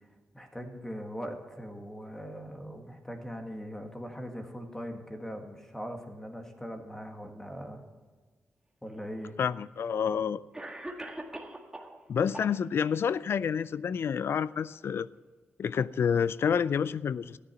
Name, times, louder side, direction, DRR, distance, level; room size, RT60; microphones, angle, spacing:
voice 1, 0.3-7.8 8.8-9.3, equal, 10° left, 4 dB, 1.8 m, -40 dB
Cough, 8.8-8.9 9.9-10.0 10.5-12.0 12.3-13.0, right 1 dB, 15° right, 1.7 m, -41 dB
voice 2, 9.4-10.4 12.1-15.1 15.6-17.4, left 7 dB, 65° left, 18 dB, 0.4 m, -28 dB
14.0 x 10.0 x 5.8 m, 1.3 s
cardioid pair, 105°, 4 cm